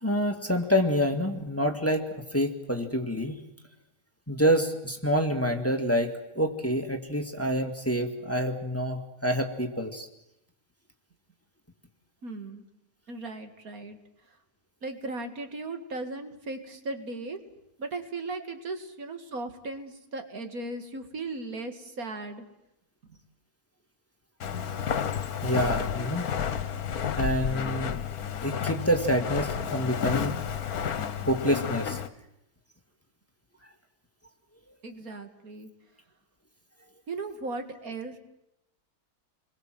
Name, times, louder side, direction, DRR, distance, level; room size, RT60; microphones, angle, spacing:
voice 1, 0.0-3.4 4.3-10.1 25.4-26.4 27.2-28.0 28.4-30.3 31.3-32.0, equal, 10° left, 5 dB, 2.1 m, -27 dB
voice 2, 12.2-12.6 13.1-14.0 14.3-14.4 14.8-17.4 17.8-22.4 23.1-23.2 34.8-35.7 37.1-38.2, right 3 dB, 65° right, 7 dB, 2.5 m, -37 dB
Walk footsteps, 24.4-32.1, left 8 dB, 75° left, 1.6 m, -31 dB
29.5 x 21.5 x 7.8 m, 0.85 s
omnidirectional pair, 1.6 m